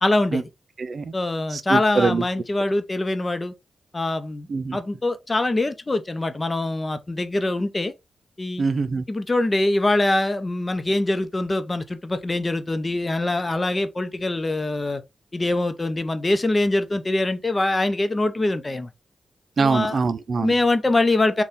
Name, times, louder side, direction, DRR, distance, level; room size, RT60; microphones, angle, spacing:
voice 1, 0.0-0.5 1.1-3.5 3.9-7.9 8.4-8.6 9.1-15.0 15.3-18.9 19.6-20.0 20.4-21.4, left 2 dB, 30° left, 0.7 m, -23 dB
voice 2, 0.8-1.1 1.5-2.2 4.5-4.8 8.6-9.0 19.6-20.5, right 4 dB, 60° right, 0.4 m, -23 dB
4.0 x 2.3 x 3.6 m
cardioid pair, 55°, 0 cm